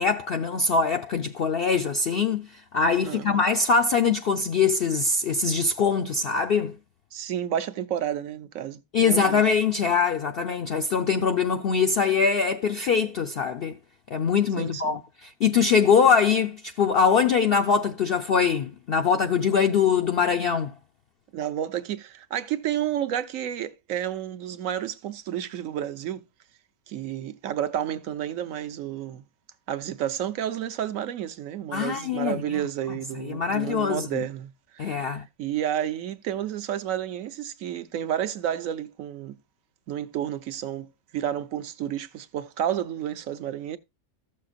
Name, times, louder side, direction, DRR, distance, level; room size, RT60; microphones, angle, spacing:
voice 1, 0.0-6.8 8.9-13.7 14.1-20.7 31.7-32.6 33.2-34.2 34.8-35.2, left 5 dB, 60° left, 0.6 m, -23 dB
voice 2, 3.0-3.4 7.1-9.4 14.6-15.0 21.3-26.2 26.9-29.2 29.7-39.3 39.9-43.8, right 10 dB, 65° right, 1.1 m, -31 dB
14.5 x 6.6 x 2.5 m
omnidirectional pair, 1.5 m